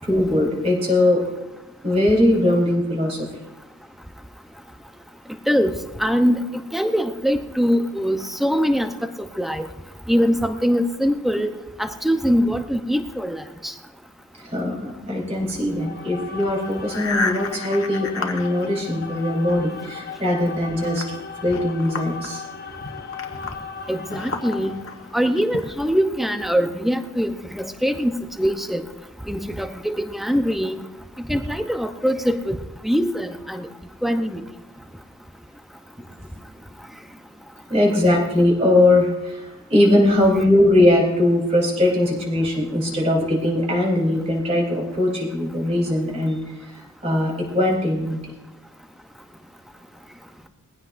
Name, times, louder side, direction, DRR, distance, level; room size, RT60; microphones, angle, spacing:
voice 1, 0.0-1.2 1.8-3.3 14.4-21.1 21.4-22.4 37.7-46.4 46.7-48.2, left 1 dB, 30° right, -2 dB, 4.0 m, -20 dB
voice 2, 6.0-6.4 6.7-8.9 9.4-9.6 10.1-11.5 11.8-13.7 23.9-24.7 25.1-28.1 28.4-28.8 29.3-30.8 31.3-33.7 34.0-34.4, equal, ahead, 6 dB, 0.7 m, -22 dB
sound 1, 15.7-25.1, left 6 dB, 45° left, 1.1 m, -37 dB
sound 2, 16.2-19.5 19.9-26.0, left 3 dB, 60° left, 1.4 m, -33 dB
21.5 x 16.0 x 2.6 m, 0.98 s
head